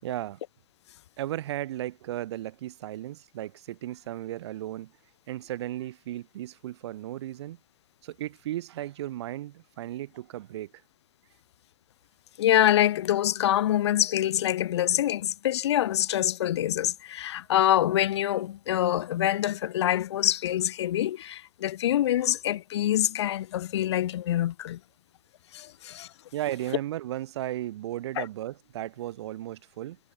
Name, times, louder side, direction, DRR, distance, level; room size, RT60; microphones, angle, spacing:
voice 1, 0.0-0.4 1.2-4.9 5.3-7.6 8.0-10.7 26.3-30.0, right 13 dB, 80° right, 4.1 m, -35 dB
voice 2, 12.4-24.8 25.5-26.1 28.2-28.3, left 12 dB, 85° left, 4.5 m, -25 dB
hypercardioid pair, 110°, 14 cm